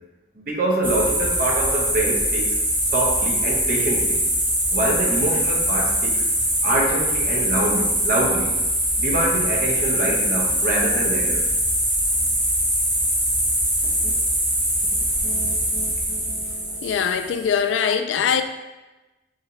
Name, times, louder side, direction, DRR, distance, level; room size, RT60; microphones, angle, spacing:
voice 1, 0.4-2.6 2.9-4.2 4.7-6.2 6.6-8.5 9.0-11.4, right 1 dB, 50° right, 0.8 m, -25 dB
sound 1, 0.8-17.5, equal, 10° right, 0.7 m, -22 dB
voice 2, 16.7-18.4, left 7 dB, 80° left, 0.3 m, -22 dB
4.8 x 2.8 x 3.1 m
head